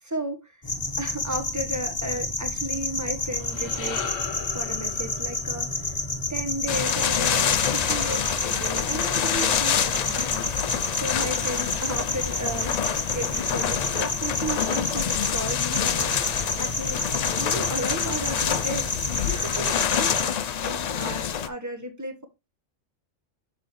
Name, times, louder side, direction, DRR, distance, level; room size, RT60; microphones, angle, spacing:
voice 1, 0.0-0.6 1.0-4.0 4.5-6.0 6.3-17.0 17.4-22.3, right 1 dB, 15° right, 0.9 m, -34 dB
sound 1, 0.6-20.2, left 2 dB, 20° left, 0.9 m, -30 dB
sound 2, 3.2-7.7, left 6 dB, 85° left, 1.2 m, -38 dB
sound 3, 6.7-21.5, left 8 dB, 65° left, 0.4 m, -27 dB
6.7 x 5.6 x 3.1 m
omnidirectional pair, 1.3 m